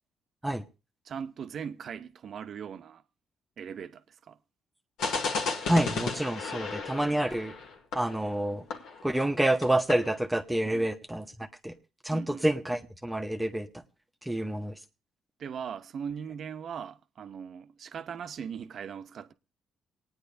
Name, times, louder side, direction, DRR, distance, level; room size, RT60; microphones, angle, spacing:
voice 1, 1.0-3.0 3.6-4.4 10.6-10.9 12.1-12.4 15.4-19.3, right 7 dB, 60° right, 0.7 m, -39 dB
sound 1, 5.0-9.4 9.6-9.7 9.9-10.1, left 4 dB, 85° left, 2.0 m, -34 dB
voice 2, 5.5-7.5 7.9-8.6 9.0-11.7 12.0-13.8 14.2-14.8, right 1 dB, 10° right, 0.9 m, -28 dB
27.5 x 9.5 x 2.7 m
cardioid pair, 90°, 0 cm